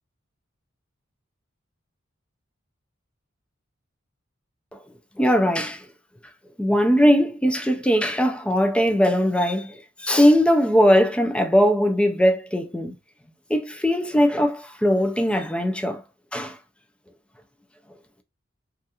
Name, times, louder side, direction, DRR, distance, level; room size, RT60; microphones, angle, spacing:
voice 1, 5.2-5.8 6.6-12.9 13.5-16.0 16.3-16.6, equal, 5° left, 0.3 m, -20 dB
2.4 x 2.3 x 2.7 m
head